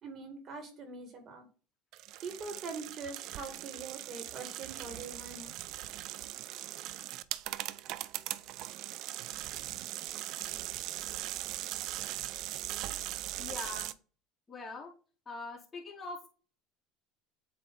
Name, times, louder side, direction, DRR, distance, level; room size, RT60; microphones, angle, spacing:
voice 1, 0.0-1.5 2.2-5.5, right 4 dB, 40° right, 5 dB, 2.0 m, -43 dB
sound 1, 1.9-13.9, right 15 dB, 60° right, 0.4 m, -40 dB
voice 2, 13.4-13.9 14.5-14.9 15.3-16.3, left 3 dB, 20° left, -4 dB, 2.8 m, -42 dB
8.1 x 3.1 x 4.1 m, 0.38 s
supercardioid pair, 100°, 0 cm